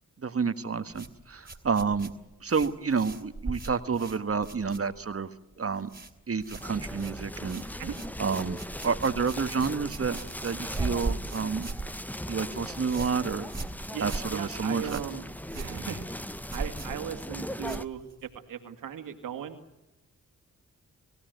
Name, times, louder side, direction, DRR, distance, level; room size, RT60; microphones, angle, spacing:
voice 1, 0.2-2.1 2.4-5.3 5.6-5.9 6.3-7.6 8.2-8.6 8.8-11.7 12.3-13.5 14.0-15.0, right 5 dB, 45° right, 10 dB, 1.6 m, -29 dB
sound 1, 0.9-5.3 5.5-6.1 6.4-18.4, right 3 dB, 30° right, 3.5 m, -39 dB
sound 2, 6.6-17.9, left 1 dB, 5° left, 1.1 m, -39 dB
voice 2, 13.9-15.2 15.5-16.2 16.5-19.6, right 8 dB, 90° right, 7 dB, 2.4 m, -38 dB
28.5 x 16.0 x 9.4 m, 1.0 s
cardioid pair, 55°, 32 cm